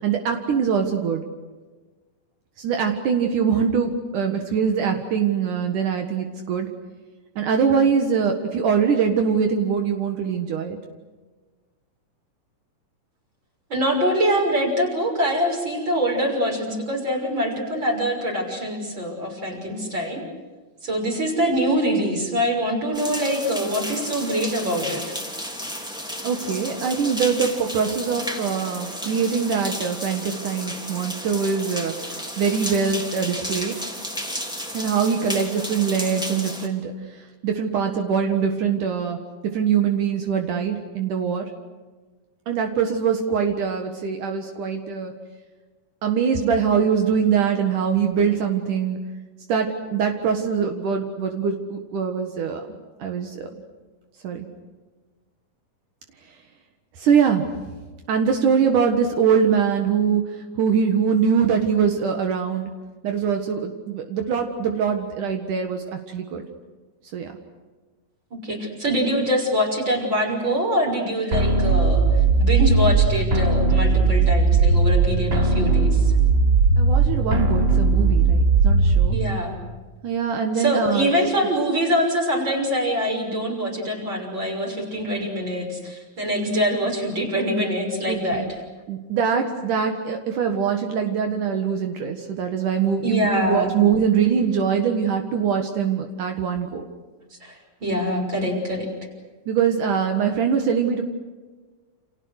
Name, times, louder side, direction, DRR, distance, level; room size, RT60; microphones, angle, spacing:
voice 1, 0.0-1.2 2.6-6.7 7.4-10.8 26.2-31.9 32.4-33.8 34.7-36.9 37.4-39.2 39.5-41.5 42.5-45.1 46.0-49.0 49.5-52.6 53.0-53.5 54.2-54.5 57.0-57.5 58.1-60.2 60.6-62.7 63.0-66.4 67.1-67.3 76.8-79.2 80.0-81.1 88.1-88.5 88.9-96.8 99.5-101.0, right 6 dB, 65° right, 4 dB, 3.0 m, -23 dB
voice 2, 13.7-20.2 20.8-25.0 68.4-72.1 72.4-76.1 79.1-79.6 80.5-88.6 93.0-93.8 97.4-98.9, equal, 30° right, 0 dB, 6.7 m, -24 dB
sound 1, 22.9-36.7, equal, ahead, 2.8 m, -33 dB
sound 2, 71.3-79.3, right 3 dB, 45° right, 0.7 m, -18 dB
29.5 x 28.5 x 6.5 m, 1.3 s
omnidirectional pair, 4.0 m